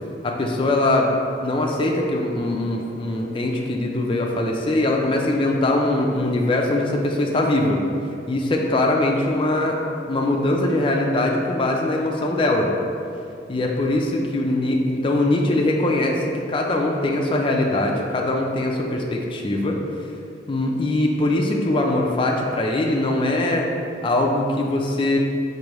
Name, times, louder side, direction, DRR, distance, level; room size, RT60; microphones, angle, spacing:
voice 1, 0.2-1.1 1.4-7.8 8.3-9.8 10.1-12.7 13.5-19.8 20.5-23.7 24.0-25.2, left 1 dB, 30° left, 0 dB, 0.4 m, -22 dB
4.8 x 2.6 x 3.0 m, 2.6 s
head